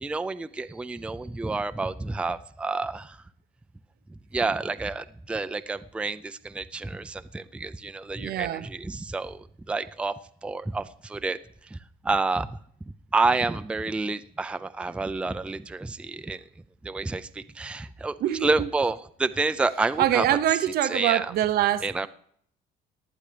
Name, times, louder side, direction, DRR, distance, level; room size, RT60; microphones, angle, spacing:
voice 1, 0.0-3.2 4.3-10.1 10.4-11.4 11.7-11.8 12.0-12.6 13.1-16.4 16.8-18.1 18.4-20.3 20.9-21.3 21.8-22.1, right 3 dB, 5° right, 0.4 m, -29 dB
voice 2, 8.2-8.7 18.2-18.7 20.0-22.1, right 12 dB, 65° right, 0.6 m, -25 dB
18.5 x 11.0 x 3.3 m
cardioid pair, 110°, 17 cm